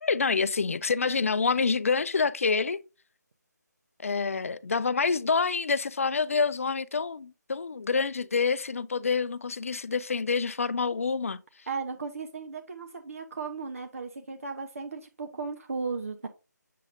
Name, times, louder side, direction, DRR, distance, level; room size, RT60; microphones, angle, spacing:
voice 1, 0.0-2.8 4.0-11.4, left 5 dB, 50° left, 0.4 m, -27 dB
voice 2, 11.7-16.3, right 4 dB, 50° right, 0.7 m, -36 dB
7.5 x 5.5 x 2.5 m
figure-of-eight pair, 155°, 10 cm